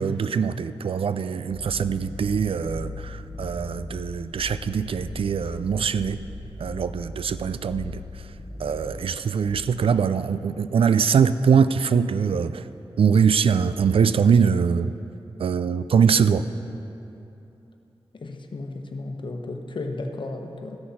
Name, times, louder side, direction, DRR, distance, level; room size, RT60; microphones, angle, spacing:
voice 1, 0.0-6.2 6.6-8.0 8.6-12.6 13.0-14.9 15.4-16.4, right 6 dB, 70° right, 14 dB, 0.4 m, -22 dB
sound 1, 1.5-10.0, left 2 dB, 30° left, 0.8 m, -38 dB
voice 2, 18.1-20.8, left 2 dB, 55° left, 4 dB, 1.0 m, -34 dB
14.0 x 6.3 x 5.7 m, 2.9 s
cardioid pair, 65°, 10 cm